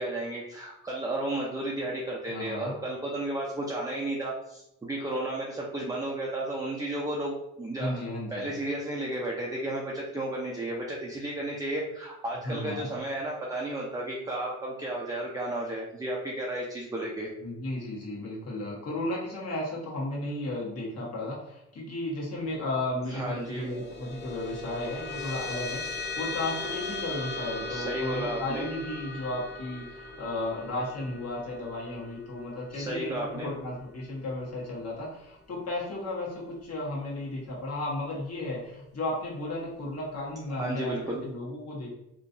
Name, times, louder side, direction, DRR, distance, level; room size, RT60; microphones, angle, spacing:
voice 1, 0.0-8.0 8.3-17.3 23.1-23.7 27.7-28.7 32.7-33.5 40.5-41.2, right 1 dB, 10° right, -3 dB, 0.5 m, -33 dB
voice 2, 2.3-2.8 7.8-8.5 12.4-12.9 17.4-41.9, left 2 dB, 55° left, -4 dB, 1.4 m, -34 dB
sound 1, 23.4-34.1, left 3 dB, 35° left, 0.8 m, -38 dB
2.9 x 2.6 x 2.6 m, 0.82 s
cardioid pair, 90°, 30 cm